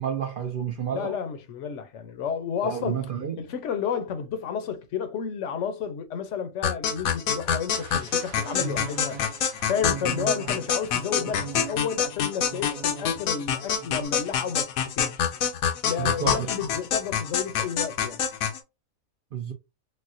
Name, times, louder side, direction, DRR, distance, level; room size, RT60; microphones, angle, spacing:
voice 1, 0.0-1.2 2.6-3.4 16.0-16.5 19.3-19.5, right 8 dB, 65° right, 0.5 m, -30 dB
voice 2, 0.9-3.0 3.4-9.2 9.7-14.7 15.0-15.2 15.8-18.2, left 7 dB, 65° left, 0.9 m, -31 dB
sound 1, 6.6-18.6, left 8 dB, 85° left, 1.1 m, -26 dB
sound 2, 7.7-13.4 13.7-14.1, right 6 dB, 90° right, 1.0 m, -40 dB
4.1 x 2.1 x 2.5 m
omnidirectional pair, 1.5 m